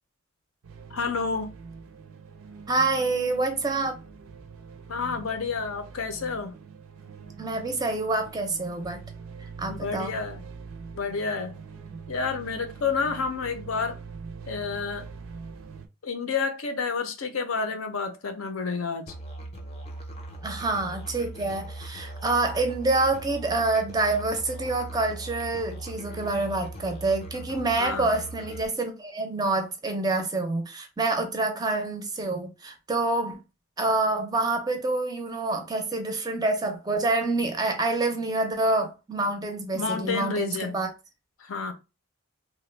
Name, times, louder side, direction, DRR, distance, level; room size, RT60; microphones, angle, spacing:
sound 1, 0.6-15.9, right 5 dB, 75° right, 0.4 m, -43 dB
voice 1, 0.9-1.5 4.9-6.6 9.7-10.4 10.9-11.6 12.1-14.0 14.5-15.1 16.0-19.1 27.8-28.1 39.7-40.7 41.4-41.7, left 5 dB, 75° left, 0.5 m, -30 dB
voice 2, 2.7-4.0 7.4-9.0 9.4-10.2 20.4-33.4 33.8-40.9, right 2 dB, 20° right, 0.4 m, -27 dB
Musical instrument, 19.1-28.7, right 2 dB, 30° left, 0.5 m, -40 dB
2.8 x 2.1 x 3.1 m
head